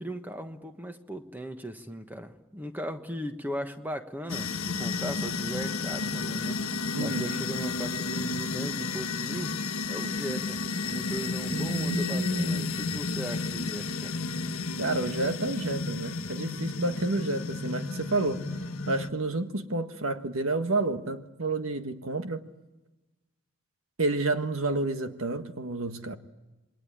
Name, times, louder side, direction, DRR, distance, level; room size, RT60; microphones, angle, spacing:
voice 1, 0.0-9.5 9.9-14.1, equal, 10° right, 1.4 m, -38 dB
sound 1, 4.3-19.1, left 4 dB, 75° left, 1.4 m, -32 dB
voice 2, 6.9-7.3 11.5-12.7 14.8-18.5 18.9-22.4 24.0-26.2, right 2 dB, 70° right, 1.6 m, -30 dB
28.0 x 21.5 x 8.7 m
head